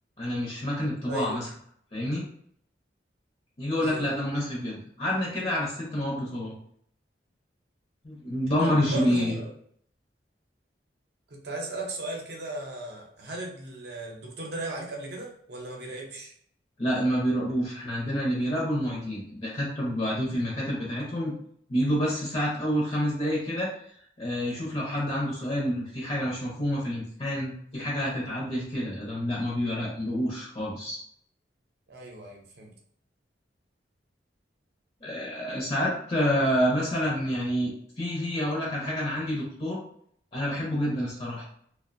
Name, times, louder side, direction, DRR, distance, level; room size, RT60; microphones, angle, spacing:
voice 1, 0.2-1.5 1.9-2.2 3.6-6.5 8.0-9.4 16.8-21.3 21.7-23.7 24.2-31.0 35.0-37.7 38.0-39.8 40.3-41.5, equal, 35° left, -4 dB, 0.5 m, -28 dB
voice 2, 1.1-1.4 3.8-4.1 8.6-9.5 11.3-16.3 31.9-32.7, right 2 dB, 65° right, -1 dB, 0.6 m, -36 dB
2.5 x 2.0 x 2.5 m, 0.64 s
head